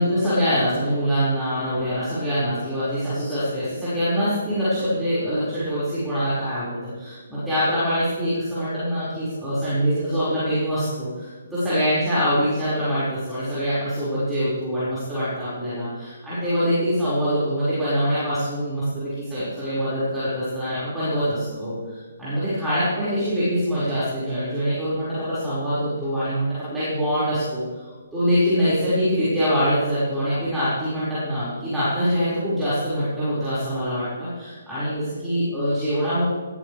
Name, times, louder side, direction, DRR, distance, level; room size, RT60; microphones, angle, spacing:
voice 1, 0.0-36.2, equal, 5° right, -14 dB, 5.5 m, -24 dB
19.5 x 14.5 x 3.5 m, 1.3 s
figure-of-eight pair, 130°, 0 cm